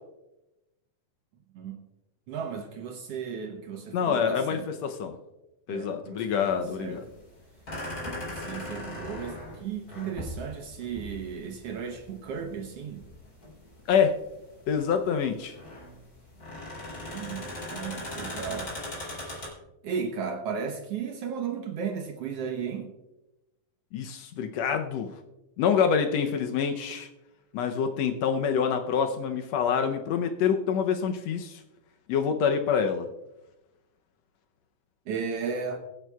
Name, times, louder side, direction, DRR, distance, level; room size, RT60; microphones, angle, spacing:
voice 1, 2.3-4.7 5.7-7.0 8.2-13.0 17.1-18.7 19.8-22.9 35.1-35.8, right 6 dB, 70° right, 4 dB, 1.7 m, -35 dB
voice 2, 3.9-5.2 5.7-7.1 13.9-14.2 14.7-15.6 23.9-25.1 25.6-27.1 27.5-31.6 32.1-33.1, left 7 dB, 75° left, 6 dB, 1.8 m, -26 dB
sound 1, 6.4-19.5, left 1 dB, 30° left, 4.4 m, -39 dB
22.5 x 9.1 x 2.3 m, 0.96 s
omnidirectional pair, 3.4 m